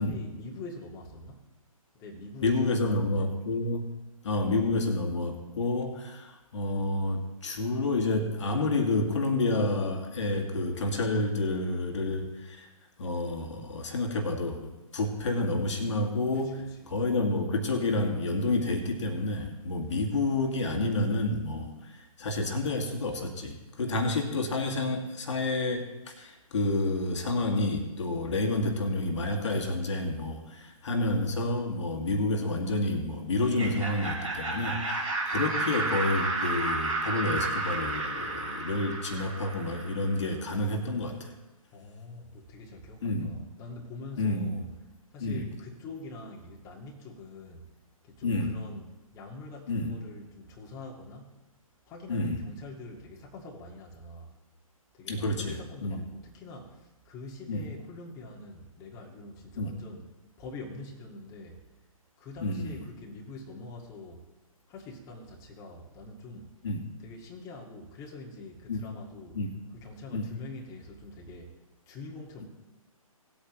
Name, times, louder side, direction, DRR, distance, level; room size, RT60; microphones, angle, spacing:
voice 1, 0.0-1.4 1.9-3.3 4.5-4.8 16.3-17.0 41.7-44.6 45.1-47.7 48.0-51.4 51.8-54.4 54.9-60.1 60.4-61.6 62.2-64.2 64.7-66.5 67.0-69.4 69.7-71.5 71.9-72.4, left 2 dB, 20° left, -2 dB, 1.9 m, -44 dB
voice 2, 2.4-3.9 4.2-12.7 13.0-16.6 16.9-41.3 43.0-43.3 44.2-44.5 45.2-45.4 48.2-48.5 49.7-49.9 52.1-52.4 55.1-55.6 55.8-56.0 57.5-57.6 59.6-59.7 62.4-62.8 66.6-66.8 68.7-68.8 69.4-69.5 70.1-70.3, left 2 dB, 55° left, 2 dB, 2.0 m, -29 dB
Laughter, 33.4-40.2, right 2 dB, 75° right, 4.1 m, -32 dB
18.5 x 8.5 x 3.1 m, 1.0 s
figure-of-eight pair, 135°, 18 cm